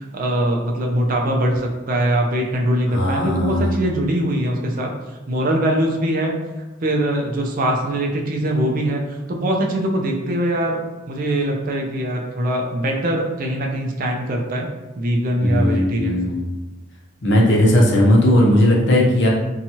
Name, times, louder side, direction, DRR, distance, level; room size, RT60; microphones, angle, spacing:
voice 1, 0.0-4.9 5.3-6.3 6.8-14.7 15.0-16.3, right 1 dB, 45° right, 1 dB, 0.4 m, -22 dB
voice 2, 2.9-3.7 15.4-16.4 17.2-19.3, left 1 dB, 60° left, -2 dB, 0.6 m, -16 dB
2.9 x 2.3 x 2.7 m, 1.1 s
head